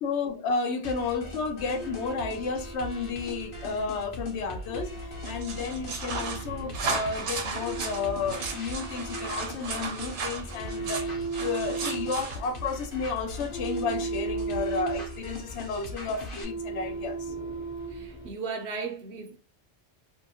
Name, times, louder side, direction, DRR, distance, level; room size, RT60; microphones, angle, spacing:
voice 1, 0.0-17.3, left 5 dB, 85° left, 0.9 m, -32 dB
sound 1, 0.8-16.4, left 1 dB, 55° left, 1.1 m, -41 dB
sound 2, 1.7-18.3, right 4 dB, 25° left, 0.5 m, -37 dB
sound 3, 5.2-12.4, right 5 dB, 85° right, 1.0 m, -35 dB
voice 2, 17.9-19.4, right 5 dB, 65° right, 0.7 m, -36 dB
2.7 x 2.5 x 2.7 m
omnidirectional pair, 1.2 m